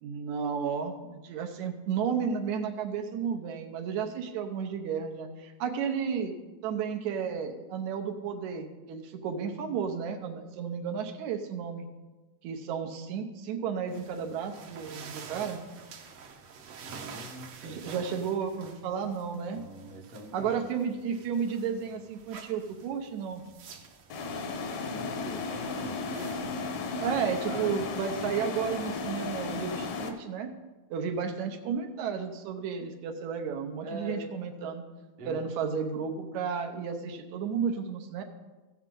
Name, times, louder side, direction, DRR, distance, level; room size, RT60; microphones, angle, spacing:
voice 1, 0.0-6.4 6.6-11.9 12.4-15.6 17.6-19.6 20.3-23.4 27.0-30.5 30.9-34.8 35.3-38.2, right 6 dB, 80° right, 5 dB, 2.3 m, -33 dB
sound 1, 13.9-27.5, right 6 dB, 65° right, 1.6 m, -49 dB
voice 2, 16.8-18.2 19.5-20.5 24.9-26.4 27.0-27.2 27.5-27.9 33.8-34.3 35.2-35.4, right 1 dB, 50° right, 0 dB, 0.7 m, -43 dB
sound 2, 24.1-30.1, left 4 dB, 75° left, 2.2 m, -34 dB
15.5 x 7.2 x 3.8 m, 1.2 s
omnidirectional pair, 3.3 m